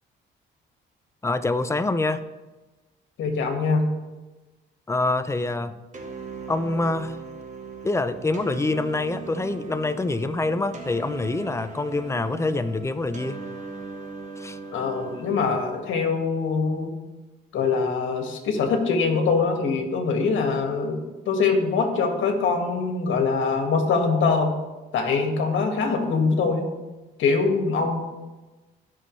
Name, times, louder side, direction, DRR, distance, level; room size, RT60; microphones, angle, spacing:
voice 1, 1.2-2.3 4.9-5.8 6.5-7.2 7.8-13.4 14.4-14.6, left 2 dB, 15° left, 11 dB, 0.6 m, -26 dB
voice 2, 3.2-3.9 14.7-16.9 17.5-21.0 21.3-24.5 24.9-26.7 27.2-28.0, left 4 dB, 75° left, 4 dB, 1.9 m, -23 dB
sound 1, 5.9-15.5, right 4 dB, 35° right, 1.4 m, -39 dB
15.5 x 6.1 x 3.2 m, 1.2 s
cardioid pair, 90°, 20 cm